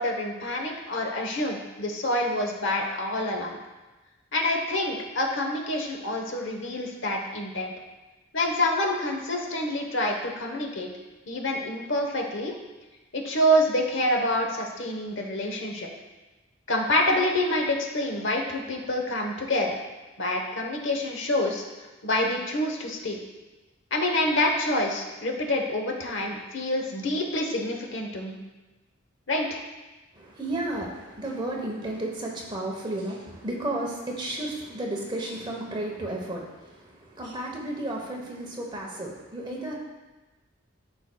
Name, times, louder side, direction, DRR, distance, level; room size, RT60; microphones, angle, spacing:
voice 1, 0.0-3.6 4.3-7.7 8.3-10.9 11.3-12.5 13.1-15.9 16.7-19.8 20.2-21.6 22.0-23.2 23.9-28.4 29.3-29.6, left 1 dB, 65° left, 2 dB, 1.0 m, -27 dB
voice 2, 30.1-39.8, right 1 dB, 20° right, -1 dB, 0.9 m, -33 dB
12.5 x 4.6 x 2.2 m, 1.2 s
head